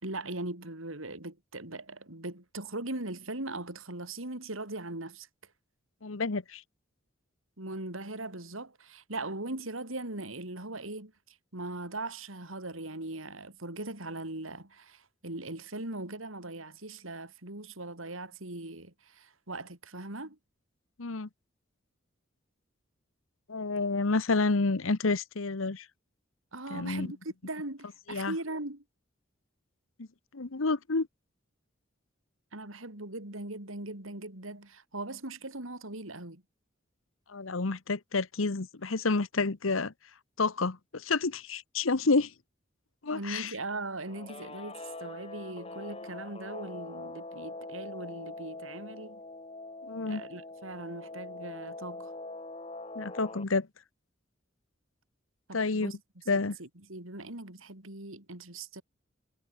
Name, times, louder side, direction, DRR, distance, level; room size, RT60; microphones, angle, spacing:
voice 1, 0.0-5.3 7.6-20.4 26.5-27.2 27.4-28.8 32.5-36.4 43.1-49.2 50.1-52.1 55.5-56.0 56.3-58.8, right 2 dB, 90° right, 4.5 m, -40 dB
voice 2, 6.0-6.6 21.0-21.3 23.5-25.9 26.7-27.1 28.1-28.3 30.0-30.1 30.3-31.1 37.3-39.9 40.4-42.3 43.0-43.5 49.8-50.2 52.9-53.7 55.5-55.9 56.3-56.6, left 3 dB, 85° left, 1.1 m, -29 dB
Guitar, 44.0-53.4, left 2 dB, 30° left, 1.5 m, -43 dB
head